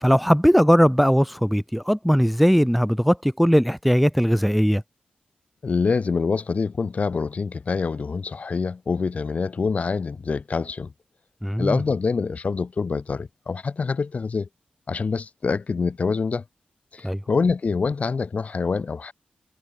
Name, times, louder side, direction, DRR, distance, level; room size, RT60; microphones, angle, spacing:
voice 1, 0.0-4.8 11.4-11.8 17.0-17.2, equal, ahead, 0.4 m, -19 dB
voice 2, 5.6-10.9 11.6-14.5 14.9-16.4 16.9-19.1, left 4 dB, 50° left, 0.8 m, -25 dB
wide cardioid pair, 105°, 3 cm